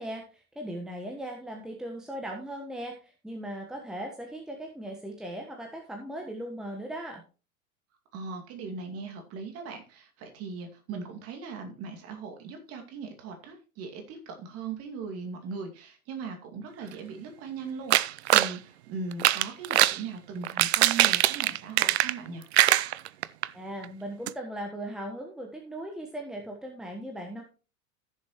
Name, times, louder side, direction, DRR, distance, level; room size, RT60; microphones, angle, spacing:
voice 1, 0.0-7.2 23.5-27.4, right 1 dB, ahead, 2 dB, 1.3 m, -38 dB
voice 2, 8.1-22.4, right 5 dB, 35° right, 4 dB, 2.4 m, -39 dB
sound 1, 17.9-18.5 19.1-20.0 20.4-22.3 22.5-23.5 23.8-23.9 24.3-24.4, right 14 dB, 50° right, 0.5 m, -22 dB
15.5 x 6.8 x 3.1 m, 0.34 s
figure-of-eight pair, 95°, 43 cm